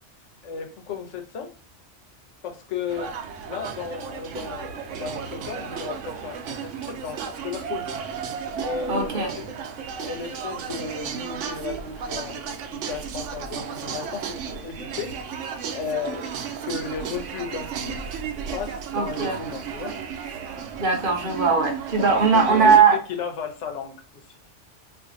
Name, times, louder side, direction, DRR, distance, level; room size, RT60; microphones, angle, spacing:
voice 1, 0.4-1.5 2.4-3.1 3.5-7.9 8.6-9.7 10.0-15.1 15.7-18.0 18.3-20.0 22.0-22.1 22.4-24.4, left 6 dB, 80° left, 4 dB, 1.1 m, -34 dB
sound 1, 2.9-22.8, right 7 dB, 80° right, 0.9 m, -34 dB
voice 2, 8.9-9.3 18.9-19.4 20.8-23.0, right 5 dB, 50° right, 3 dB, 0.8 m, -19 dB
2.6 x 2.5 x 3.7 m, 0.35 s
omnidirectional pair, 1.2 m